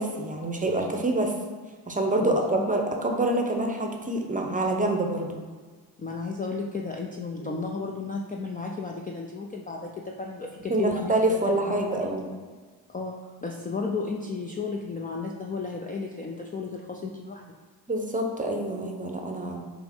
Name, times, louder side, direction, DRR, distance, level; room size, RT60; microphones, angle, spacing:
voice 1, 0.0-1.3 1.9-5.3 7.4-7.6 10.7-12.3 17.9-19.7, right 1 dB, 20° right, 2 dB, 0.7 m, -26 dB
voice 2, 2.2-2.6 6.0-11.4 11.7-12.1 12.9-17.4, left 4 dB, 20° left, 0 dB, 0.4 m, -34 dB
5.7 x 2.0 x 3.6 m, 1.5 s
supercardioid pair, 55°, 45 cm